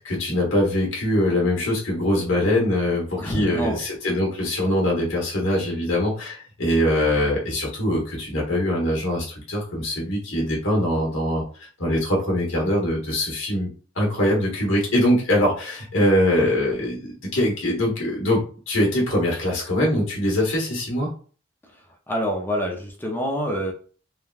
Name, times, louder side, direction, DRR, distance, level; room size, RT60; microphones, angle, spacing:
voice 1, 0.0-13.7 13.9-21.1, left 1 dB, 70° left, -2 dB, 1.1 m, -23 dB
voice 2, 3.2-3.8 22.1-23.7, equal, 10° left, 0 dB, 0.4 m, -26 dB
3.3 x 2.2 x 2.3 m, 0.40 s
head